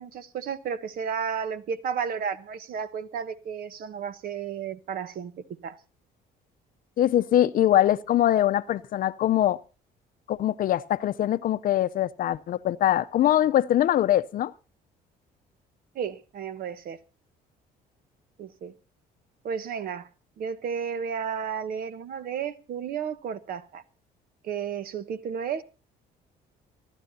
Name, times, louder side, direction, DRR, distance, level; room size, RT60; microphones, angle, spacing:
voice 1, 0.0-5.8 15.9-17.0 18.4-18.7 19.4-20.1 20.4-23.8 24.4-25.6, right 7 dB, 60° right, 1.2 m, -33 dB
voice 2, 7.0-9.6 10.3-14.5, left 12 dB, 55° left, 0.7 m, -23 dB
27.5 x 11.5 x 2.8 m
cardioid pair, 110°, 17 cm